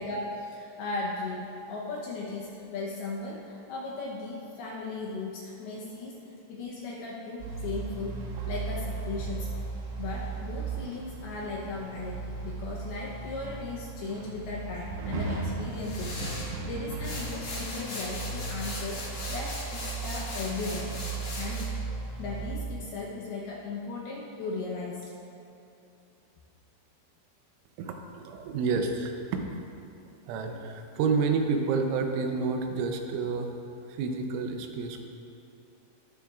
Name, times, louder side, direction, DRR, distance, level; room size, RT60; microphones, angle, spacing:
voice 1, 0.0-6.2 6.5-8.1 8.5-9.5 10.0-20.9 21.3-21.7 22.2-25.1, left 3 dB, 75° left, -3 dB, 2.4 m, -37 dB
sound 1, 7.4-22.5, right 4 dB, 70° right, 3.2 m, -36 dB
sound 2, 15.7-16.5 17.0-21.6, left 2 dB, 50° left, 1.8 m, -39 dB
voice 2, 27.8-29.5 30.3-33.5 33.9-35.0, right 4 dB, 85° right, 4 dB, 3.2 m, -29 dB
20.5 x 7.1 x 2.4 m, 2.7 s
omnidirectional pair, 5.4 m